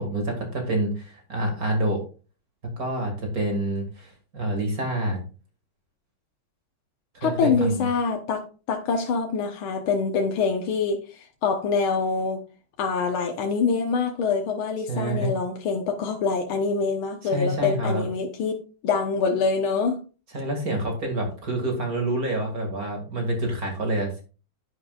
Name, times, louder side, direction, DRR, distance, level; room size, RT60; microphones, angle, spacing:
voice 1, 0.0-2.0 2.8-5.2 7.1-7.8 14.9-15.3 17.2-18.0 20.3-24.2, right 1 dB, 45° right, 2 dB, 2.6 m, -27 dB
voice 2, 7.2-12.4 12.8-18.6 18.8-20.0, left 4 dB, 85° left, 3 dB, 1.9 m, -25 dB
10.5 x 9.4 x 2.4 m, 0.34 s
omnidirectional pair, 2.2 m